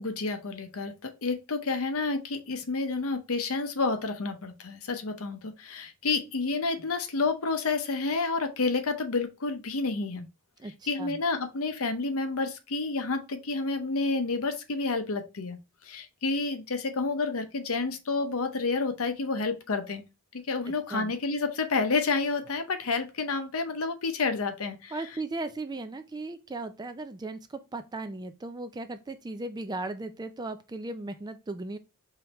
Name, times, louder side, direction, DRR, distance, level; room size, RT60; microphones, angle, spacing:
voice 1, 0.0-10.3 10.9-20.0 20.3-24.9, left 3 dB, 75° left, 0.7 m, -30 dB
voice 2, 10.6-11.2 20.7-21.1 24.9-31.8, right 2 dB, 20° right, 0.4 m, -37 dB
4.7 x 3.2 x 2.9 m
head